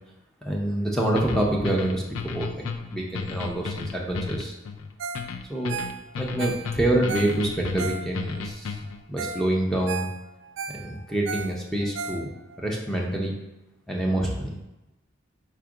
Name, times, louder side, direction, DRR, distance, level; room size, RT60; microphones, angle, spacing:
voice 1, 0.4-4.5 5.5-5.8 6.2-8.8 9.1-10.1 10.7-12.3 12.6-13.3 13.9-14.5, right 1 dB, ahead, -2 dB, 0.5 m, -26 dB
sound 1, 1.2-9.0, left 5 dB, 75° left, 0.4 m, -34 dB
Ringtone, 5.0-5.3 5.5-8.4 8.9-9.0 9.2-9.5 9.7-12.6 13.0-13.1, right 5 dB, 65° right, 0.3 m, -35 dB
4.3 x 2.4 x 4.7 m, 0.99 s
head